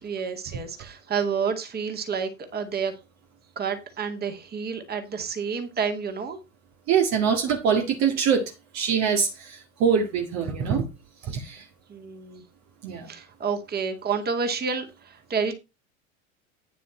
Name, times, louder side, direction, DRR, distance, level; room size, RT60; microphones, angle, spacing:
voice 1, 0.0-2.9 3.6-6.4 11.9-12.4 13.1-15.6, right 6 dB, 25° right, 2.3 m, -29 dB
voice 2, 6.9-10.9 11.2-11.7 12.8-13.1, right 6 dB, 40° right, 2.0 m, -24 dB
9.5 x 6.9 x 4.4 m
figure-of-eight pair, 85°, 40 cm